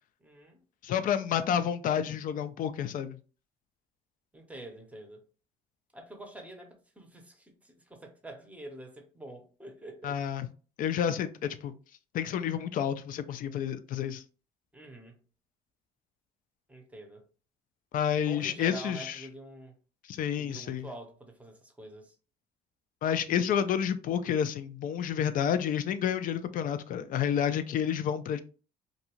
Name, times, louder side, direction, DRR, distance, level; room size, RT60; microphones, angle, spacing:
voice 1, 0.2-0.6 4.3-5.2 5.9-10.2 14.7-15.2 16.7-17.2 18.3-19.7 20.4-22.1, right 2 dB, 10° right, 0.7 m, -46 dB
voice 2, 0.8-3.2 10.0-10.5 10.8-11.7 12.1-14.2 17.9-19.2 20.1-20.9 23.0-28.4, left 9 dB, 55° left, 0.4 m, -30 dB
2.6 x 2.3 x 2.9 m
cardioid pair, 110°, 17 cm